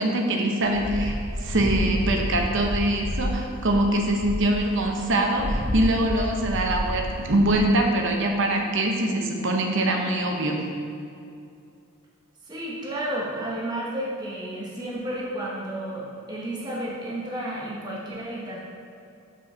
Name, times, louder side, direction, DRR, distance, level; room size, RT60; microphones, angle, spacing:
voice 1, 0.0-10.6, right 1 dB, 60° right, 2 dB, 0.9 m, -23 dB
sound 1, 0.6-7.6, left 1 dB, 35° left, 1.8 m, -30 dB
voice 2, 12.5-18.6, right 1 dB, 20° right, -5 dB, 1.0 m, -32 dB
5.4 x 5.4 x 5.6 m, 2.5 s
head